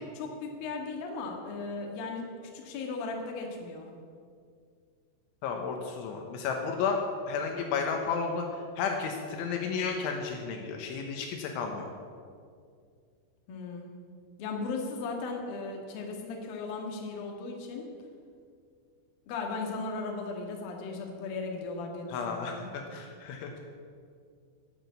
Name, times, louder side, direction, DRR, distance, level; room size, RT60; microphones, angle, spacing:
voice 1, 0.1-3.9 13.5-13.9 14.4-17.9 19.3-22.6, left 3 dB, 60° left, 1 dB, 3.0 m, -37 dB
voice 2, 5.4-7.0 7.3-11.8 22.1-23.5, left 5 dB, 80° left, 2 dB, 3.4 m, -32 dB
12.0 x 9.3 x 8.1 m, 2.2 s
omnidirectional pair, 5.7 m